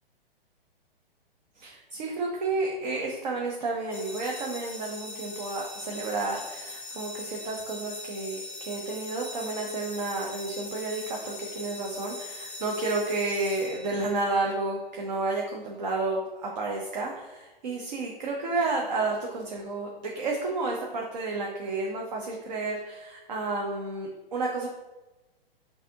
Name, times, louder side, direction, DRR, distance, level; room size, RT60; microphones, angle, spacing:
voice 1, 1.6-24.7, right 3 dB, 45° right, -1 dB, 0.8 m, -31 dB
sound 1, 3.9-14.3, left 2 dB, 5° left, 0.7 m, -41 dB
6.1 x 2.8 x 2.7 m, 1.1 s
figure-of-eight pair, 120°, 30 cm